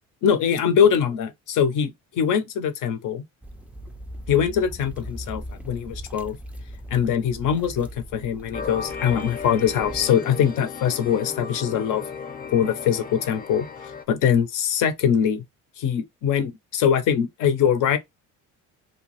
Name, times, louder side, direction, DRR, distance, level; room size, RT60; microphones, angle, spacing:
voice 1, 0.2-3.2 4.3-6.4 6.9-12.0 12.5-13.7 14.1-15.4 15.8-18.0, left 8 dB, 65° left, 0.7 m, -22 dB
sound 1, 3.4-10.1, equal, 5° right, 0.3 m, -39 dB
sound 2, 8.5-14.0, left 6 dB, 25° left, 0.7 m, -35 dB
2.7 x 2.3 x 3.0 m
supercardioid pair, 90°, 35 cm